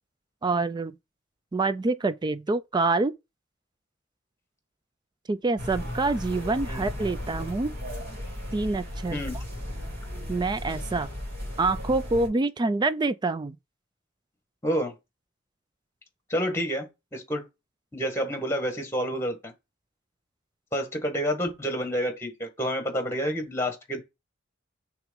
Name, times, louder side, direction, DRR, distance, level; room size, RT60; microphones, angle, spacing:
voice 1, 0.4-1.0 1.5-3.1 5.3-7.7 8.5-9.2 10.3-11.1 11.6-13.6, right 3 dB, 20° right, 0.3 m, -26 dB
sound 1, 5.6-12.3, left 1 dB, 50° right, 3.0 m, -35 dB
voice 2, 9.1-9.4 14.6-14.9 16.3-17.4 17.9-19.5 20.7-24.0, equal, 15° left, 1.6 m, -29 dB
6.1 x 3.6 x 5.2 m
head